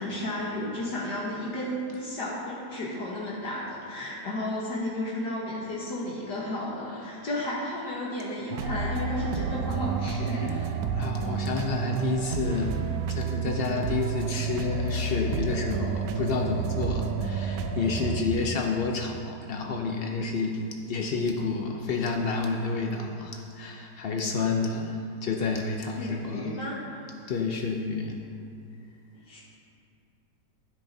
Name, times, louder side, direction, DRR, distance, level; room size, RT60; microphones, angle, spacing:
voice 1, 0.0-10.5 10.9-11.1 26.0-26.8 29.3-29.4, left 1 dB, 70° left, -5 dB, 1.8 m, -33 dB
sound 1, 8.5-18.2, right 5 dB, 80° right, 1.3 m, -30 dB
voice 2, 10.9-12.8 13.1-26.6 27.3-28.2, left 4 dB, 85° left, 2 dB, 0.5 m, -30 dB
16.0 x 9.0 x 2.7 m, 2.6 s
omnidirectional pair, 1.9 m